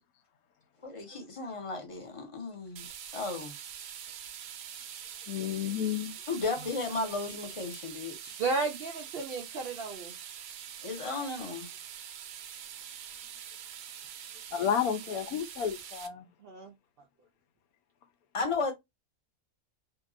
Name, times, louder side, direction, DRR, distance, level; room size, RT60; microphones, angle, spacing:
voice 1, 0.8-2.9 3.1-3.5 6.3-8.4 10.8-11.7 18.3-18.7, left 3 dB, 35° left, 0.5 m, -34 dB
sound 1, 2.8-16.1, right 9 dB, 90° right, 1.1 m, -44 dB
voice 2, 5.3-6.1 14.5-16.3, left 8 dB, 85° left, 1.1 m, -31 dB
voice 3, 8.4-10.1 16.4-16.7, right 3 dB, 65° right, 0.5 m, -33 dB
2.8 x 2.6 x 2.4 m
omnidirectional pair, 1.5 m